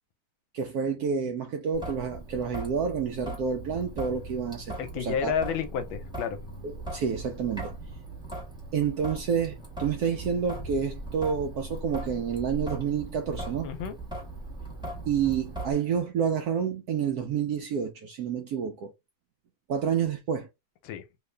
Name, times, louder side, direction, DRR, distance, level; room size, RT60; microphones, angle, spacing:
voice 1, 0.5-5.3 6.6-7.7 8.7-13.7 15.1-18.9 19.7-20.5, right 7 dB, 80° right, 0.8 m, -29 dB
Traffic noise roadway noise / Drip / Trickle dribble, 1.7-15.7, right 1 dB, 5° right, 0.8 m, -39 dB
voice 2, 4.8-6.4 13.6-13.9 20.8-21.0, left 7 dB, 85° left, 1.4 m, -30 dB
3.3 x 2.5 x 3.2 m
omnidirectional pair, 2.2 m